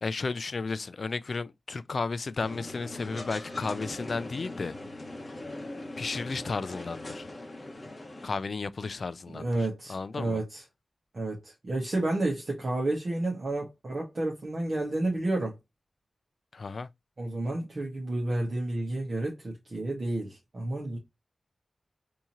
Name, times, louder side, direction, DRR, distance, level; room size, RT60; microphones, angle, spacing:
voice 1, 0.0-4.8 6.0-7.3 8.2-9.5 9.9-10.4 16.5-16.9, left 4 dB, 55° left, 0.3 m, -33 dB
sound 1, 2.4-8.4, left 2 dB, 30° left, 0.9 m, -41 dB
voice 2, 9.3-10.6 11.1-15.6 17.2-21.0, right 2 dB, 45° right, 1.3 m, -31 dB
3.6 x 2.8 x 2.9 m
wide cardioid pair, 100°, 0 cm